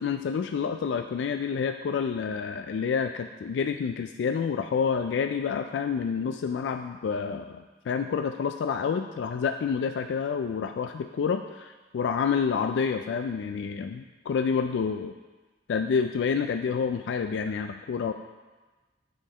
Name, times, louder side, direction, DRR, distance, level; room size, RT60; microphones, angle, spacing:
voice 1, 0.0-15.1 15.7-18.1, left 6 dB, 75° left, 7 dB, 0.3 m, -28 dB
6.7 x 6.3 x 4.2 m, 1.2 s
head